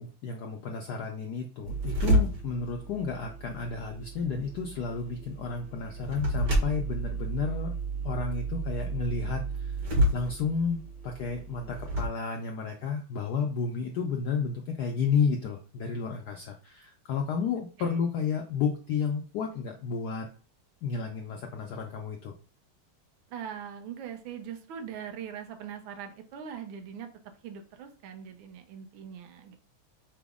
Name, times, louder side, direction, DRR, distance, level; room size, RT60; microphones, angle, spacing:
voice 1, 0.0-7.8 8.0-9.8 10.1-20.3 20.8-22.3, left 5 dB, 80° left, 3 dB, 0.8 m, -32 dB
sound 1, 1.6-12.1, right 1 dB, 55° right, 1.3 m, -31 dB
voice 2, 23.3-27.1 27.4-29.6, right 8 dB, 75° right, 6 dB, 1.4 m, -41 dB
5.9 x 2.0 x 3.5 m, 0.40 s
omnidirectional pair, 2.3 m